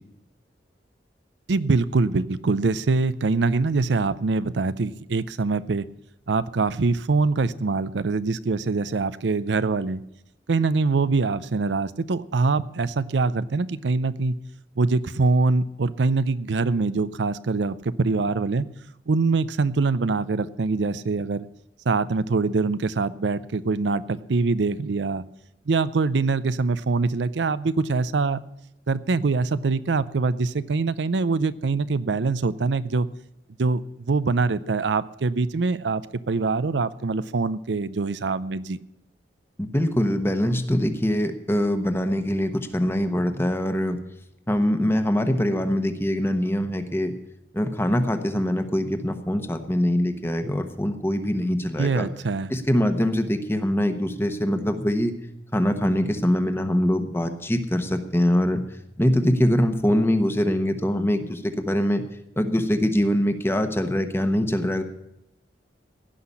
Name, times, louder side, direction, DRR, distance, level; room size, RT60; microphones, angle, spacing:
voice 1, 1.5-5.9 6.3-10.0 10.5-14.4 14.8-18.7 19.1-21.5 21.9-25.2 25.7-28.4 28.9-33.1 33.6-38.8 51.8-52.5, right 3 dB, 75° right, 15 dB, 0.6 m, -24 dB
voice 2, 39.6-44.0 44.5-47.1 47.5-52.1 52.5-55.1 55.5-58.6 59.0-62.0 62.4-64.8, equal, 15° left, 8 dB, 1.1 m, -23 dB
16.5 x 5.8 x 9.6 m, 0.84 s
head